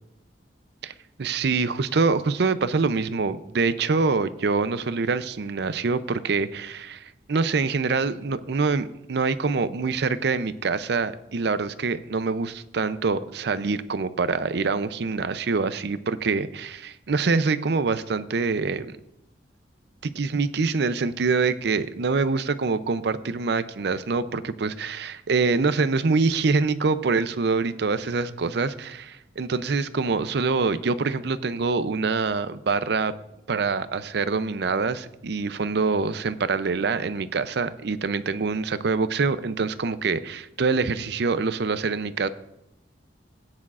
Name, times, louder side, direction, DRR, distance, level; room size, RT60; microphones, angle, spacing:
voice 1, 1.2-19.0 20.0-33.1 33.5-42.3, right 4 dB, 65° right, 13 dB, 0.5 m, -25 dB
17.5 x 9.6 x 2.5 m, 0.86 s
head